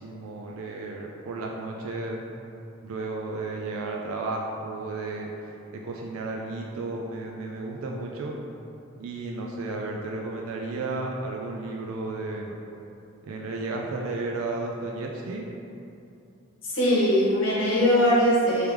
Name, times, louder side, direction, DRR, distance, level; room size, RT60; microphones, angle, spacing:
voice 1, 0.0-2.2 2.8-5.3 5.7-8.3 9.0-12.5 13.2-15.4, right 3 dB, 85° right, 0 dB, 0.3 m, -33 dB
voice 2, 16.6-18.7, equal, 70° left, -6 dB, 1.0 m, -21 dB
3.3 x 3.0 x 3.4 m, 2.7 s
head